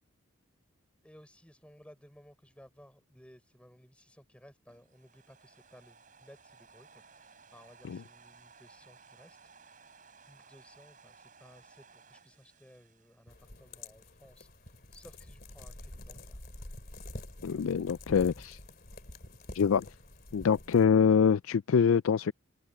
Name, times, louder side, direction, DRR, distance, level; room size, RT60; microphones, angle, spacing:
voice 1, 1.0-9.9 10.3-16.4, equal, 5° left, 5.9 m, -58 dB
sound 1, 4.7-13.9, right 5 dB, 40° right, 5.3 m, -59 dB
sound 2, 13.3-20.9, left 1 dB, 45° left, 3.0 m, -47 dB
voice 2, 17.4-18.6 19.5-19.9 20.3-22.3, left 6 dB, 75° left, 0.4 m, -25 dB
head